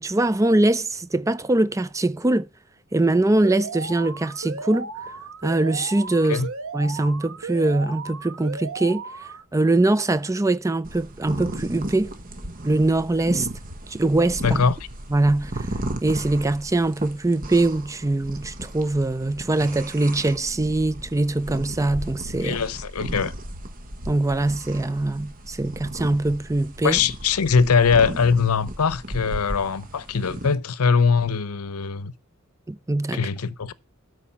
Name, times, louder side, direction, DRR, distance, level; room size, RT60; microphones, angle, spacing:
voice 1, 0.0-2.5 2.9-4.9 5.4-6.4 6.7-9.0 9.5-12.1 12.6-13.5 13.9-14.6 15.1-15.7 16.0-22.6 24.1-27.0 32.7-33.2, right 2 dB, 15° right, 0.5 m, -22 dB
Alarm, 3.4-9.4, right 4 dB, 65° right, 1.4 m, -35 dB
sound 1, 10.8-30.5, right 1 dB, 40° right, 1.4 m, -35 dB
voice 2, 14.4-14.8 22.4-23.3 26.8-32.1 33.1-33.7, left 5 dB, 85° left, 0.7 m, -21 dB
13.0 x 4.8 x 5.6 m
head